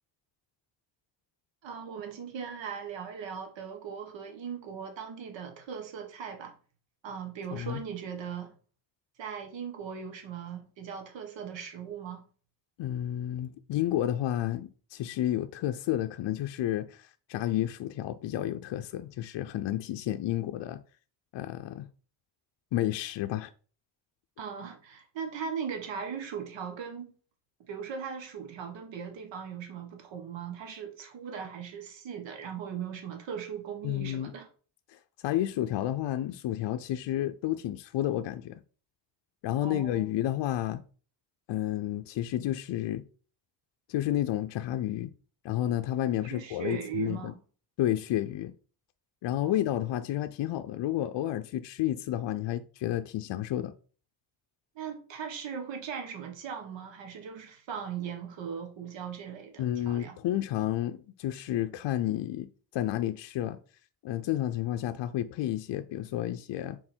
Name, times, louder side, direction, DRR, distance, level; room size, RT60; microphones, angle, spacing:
voice 1, 1.6-6.5 7.0-8.5 9.2-12.2 24.4-27.1 27.7-34.5 39.6-40.1 46.2-47.4 49.4-49.6 54.7-60.2, right 7 dB, 85° right, 1.5 m, -39 dB
voice 2, 7.5-7.8 12.8-20.8 21.3-21.9 22.7-23.5 33.8-34.3 34.9-38.6 39.4-40.8 41.5-43.0 43.9-45.1 45.4-47.3 47.8-48.5 49.2-53.7 59.6-63.6 64.0-66.8, left 13 dB, 75° left, 0.6 m, -31 dB
6.6 x 4.0 x 4.4 m
cardioid pair, 135°, 43 cm